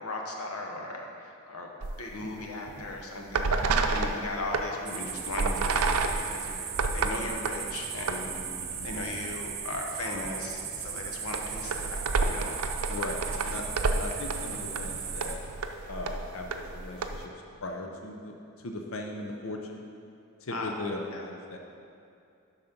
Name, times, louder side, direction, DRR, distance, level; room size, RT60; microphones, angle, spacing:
voice 1, 0.0-1.7 2.0-8.3 8.8-12.6 13.9-14.1 20.5-20.7 21.1-21.3, left 2 dB, 90° left, 1 dB, 1.1 m, -37 dB
sound 1, 1.8-2.3 2.7-2.9 3.3-4.7 5.3-7.6 8.0-8.2 8.6-9.4 9.7-9.8 10.2-10.4 11.0-17.2, right 3 dB, 90° right, 0.5 m, -30 dB
sound 2, 4.9-15.4, right 7 dB, 45° right, 0.8 m, -37 dB
voice 2, 8.4-8.9 12.9-13.6 13.9-15.4 15.9-17.3 17.6-19.8 20.4-21.6, left 2 dB, 65° left, 2 dB, 0.7 m, -38 dB
11.5 x 4.1 x 5.2 m, 2.5 s
head